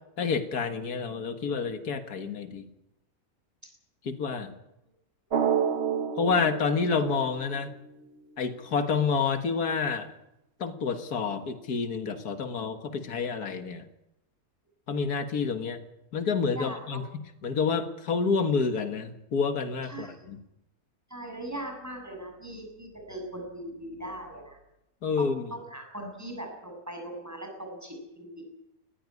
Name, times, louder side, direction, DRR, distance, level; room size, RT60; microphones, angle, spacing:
voice 1, 0.2-2.7 4.0-4.5 6.2-7.7 8.4-10.1 10.6-13.9 14.9-15.8 16.1-20.4 25.0-25.5, left 5 dB, 90° left, 9 dB, 2.1 m, -29 dB
Drum, 5.3-7.9, right 7 dB, 50° right, 1.3 m, -29 dB
voice 2, 16.5-17.0 19.9-20.3 21.1-24.6 25.2-28.4, right 1 dB, 10° right, 2 dB, 7.1 m, -40 dB
20.0 x 16.0 x 9.7 m, 0.89 s
omnidirectional pair, 1.6 m